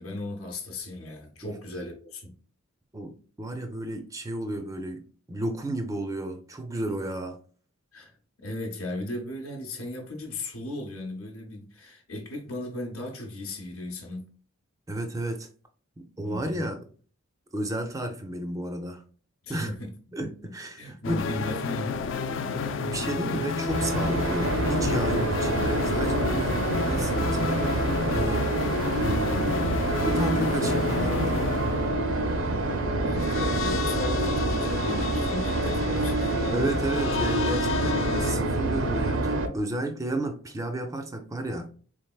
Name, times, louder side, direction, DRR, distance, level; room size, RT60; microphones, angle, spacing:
voice 1, 0.0-2.3 7.9-8.1 8.4-14.3 16.2-16.6 19.4-19.9 20.2-22.0 33.0-36.4, left 1 dB, 80° left, 0.8 m, -36 dB
voice 2, 2.9-5.0 5.3-7.4 14.9-15.5 16.0-16.8 17.5-19.0 19.5-19.7 20.1-21.2 22.5-27.9 28.1-28.5 29.0-31.6 36.5-41.7, right 1 dB, 15° right, 0.4 m, -32 dB
sound 1, 21.0-38.3, left 4 dB, 60° left, 0.3 m, -31 dB
sound 2, 23.7-39.5, right 2 dB, 65° right, 0.5 m, -27 dB
3.7 x 3.3 x 2.3 m
head